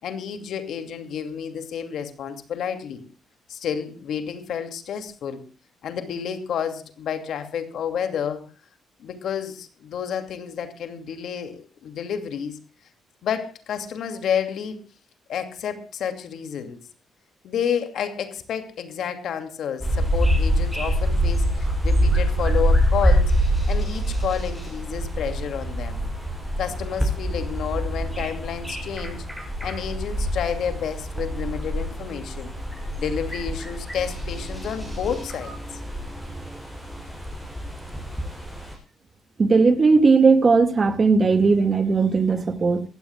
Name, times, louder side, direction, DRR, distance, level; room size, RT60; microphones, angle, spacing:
voice 1, 0.0-3.0 3.5-5.4 5.8-8.4 9.0-12.6 13.2-14.8 15.3-16.8 17.4-23.3 23.7-26.0 26.6-29.3 29.6-32.5 33.0-35.8, left 8 dB, 70° left, 2.6 m, -30 dB
sound 1, 19.8-38.7, equal, ahead, 7.1 m, -25 dB
voice 2, 39.4-42.8, right 4 dB, 35° right, 2.1 m, -17 dB
23.0 x 16.0 x 2.4 m
cardioid pair, 90°, 0 cm